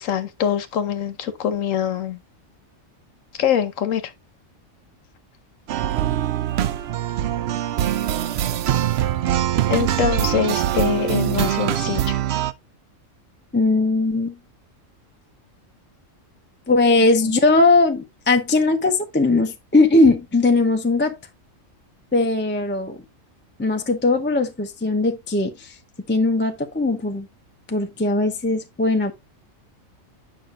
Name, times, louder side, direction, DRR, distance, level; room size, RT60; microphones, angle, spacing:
voice 1, 0.0-2.2 3.4-4.1 9.7-12.2 17.2-17.4, left 8 dB, 75° left, 1.2 m, -24 dB
sound 1, 5.7-12.5, right 11 dB, 65° right, 0.7 m, -23 dB
voice 2, 13.5-14.4 16.7-21.2 22.1-23.0 23.6-25.8 26.1-27.3 27.7-29.1, left 3 dB, 10° left, 0.6 m, -19 dB
8.7 x 5.8 x 2.5 m
omnidirectional pair, 1.4 m